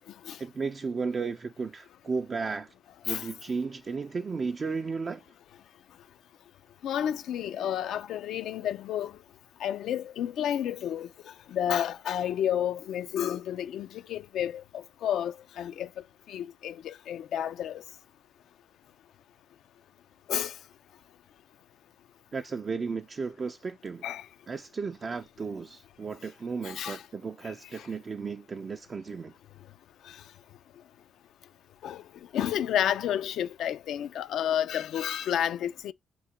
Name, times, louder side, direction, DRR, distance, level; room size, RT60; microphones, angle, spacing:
voice 1, 0.4-2.7 3.1-5.2 22.3-24.0 24.5-29.3, right 4 dB, 40° right, 0.3 m, -34 dB
voice 2, 6.8-9.1 9.6-11.1 11.5-15.9 16.3-17.8 20.3-20.5 24.0-24.3 26.6-27.0 27.4-27.9 31.8-32.0 32.3-35.9, left 10 dB, 75° left, 0.3 m, -31 dB
3.8 x 2.2 x 4.1 m
cardioid pair, 90°, 0 cm